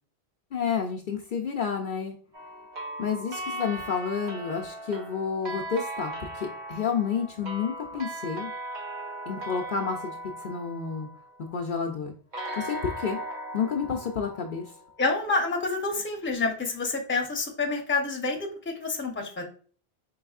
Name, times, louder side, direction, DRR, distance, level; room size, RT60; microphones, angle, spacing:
voice 1, 0.5-2.2 3.0-8.5 9.3-11.1 11.5-12.1 12.6-13.2 13.5-14.7, left 6 dB, 60° left, 1 dB, 0.6 m, -30 dB
sound 1, 2.3-11.6 12.3-15.2, right 1 dB, 50° right, 0.8 m, -38 dB
voice 2, 15.0-19.4, left 3 dB, 15° left, 1 dB, 0.7 m, -28 dB
4.7 x 3.3 x 2.3 m, 0.44 s
omnidirectional pair, 1.1 m